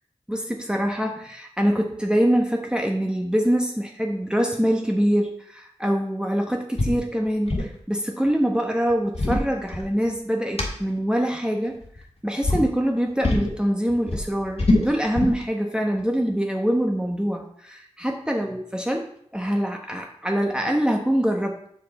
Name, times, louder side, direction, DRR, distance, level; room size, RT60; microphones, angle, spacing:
voice 1, 0.3-11.8 12.2-19.1 19.3-21.6, equal, 5° right, 1 dB, 1.1 m, -24 dB
sound 1, 6.8-7.0 7.3-7.8 8.9-10.2 10.6-10.7 11.7-12.1 12.4-12.7 13.2-13.5 13.9-15.4, left 2 dB, 60° left, 1.7 m, -23 dB
6.7 x 5.3 x 4.2 m, 0.67 s
cardioid pair, 45°, 12 cm